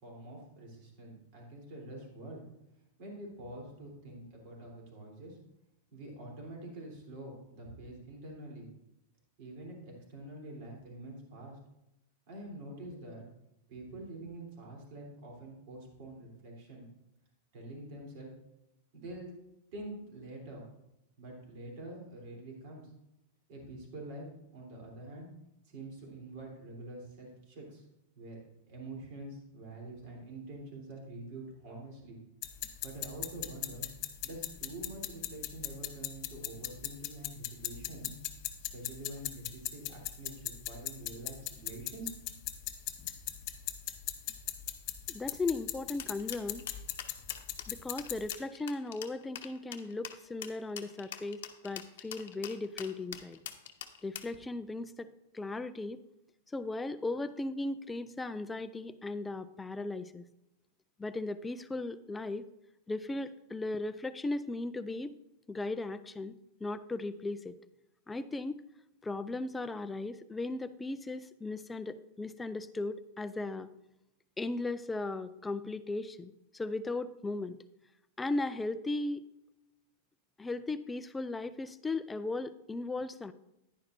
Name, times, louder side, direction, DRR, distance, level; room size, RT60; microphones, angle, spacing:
voice 1, 0.0-2.4 3.0-5.4 5.9-8.7 9.4-11.6 12.3-13.2 13.7-16.8 17.5-18.3 18.9-19.3 19.7-20.7 21.2-22.9 23.5-24.2 24.5-25.3 25.6-27.8 28.1-28.4 28.7-32.2 32.8-33.9 34.2-38.1 38.7-42.1, right 2 dB, 55° right, -1 dB, 3.4 m, -46 dB
sound 1, 32.4-48.3, left 13 dB, 45° left, 0.7 m, -40 dB
voice 2, 45.1-46.7 47.7-53.4 54.0-56.0 56.5-60.3 61.0-62.5 62.9-65.2 65.5-67.6 68.1-68.6 69.0-73.7 74.4-77.6 78.2-79.2 80.4-83.3, left 2 dB, 10° left, 11 dB, 0.4 m, -37 dB
sound 2, 46.0-54.4, left 10 dB, 75° left, 0.8 m, -44 dB
10.0 x 9.9 x 2.6 m, 0.89 s
supercardioid pair, 145°, 0 cm